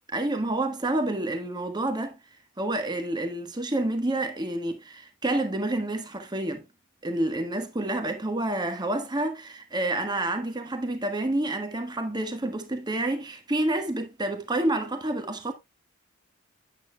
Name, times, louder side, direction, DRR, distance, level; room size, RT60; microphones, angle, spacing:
voice 1, 0.1-2.2 2.6-6.6 7.0-15.5, right 1 dB, 20° right, 1.3 m, -28 dB
8.9 x 8.2 x 2.3 m
head